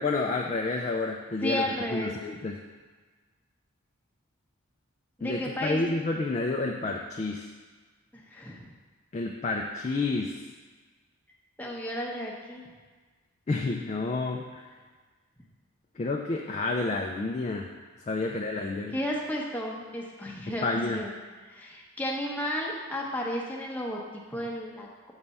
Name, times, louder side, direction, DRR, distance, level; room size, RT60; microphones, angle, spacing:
voice 1, 0.0-2.5 5.2-7.5 9.1-10.3 13.5-14.6 16.0-17.7 18.1-18.9 20.5-21.0, left 3 dB, 30° left, 1 dB, 0.3 m, -30 dB
voice 2, 1.4-2.2 5.2-5.9 8.1-8.7 11.6-12.6 18.2-18.3 18.9-20.7 20.9-21.1 21.4-25.1, equal, 5° left, -3 dB, 0.7 m, -33 dB
7.2 x 3.3 x 5.3 m, 1.4 s
head